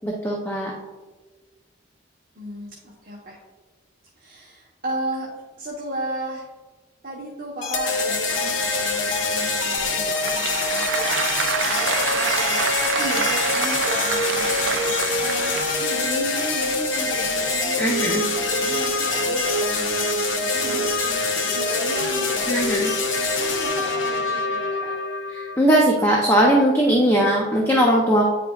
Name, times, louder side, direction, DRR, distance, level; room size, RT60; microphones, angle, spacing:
voice 1, 0.0-0.7 17.8-18.2 22.5-22.9 25.3-28.3, right 1 dB, 10° left, -1 dB, 0.6 m, -19 dB
voice 2, 2.3-3.4 4.2-5.3 5.6-6.5 7.0-12.6 12.9-20.1 20.4-25.0, right 1 dB, 45° right, -5 dB, 1.1 m, -34 dB
sound 1, 7.6-25.6, left 3 dB, 75° left, 0.9 m, -24 dB
Applause / Crowd, 9.8-16.0, right 8 dB, 70° right, 0.3 m, -27 dB
9.2 x 5.0 x 2.4 m, 1.3 s
head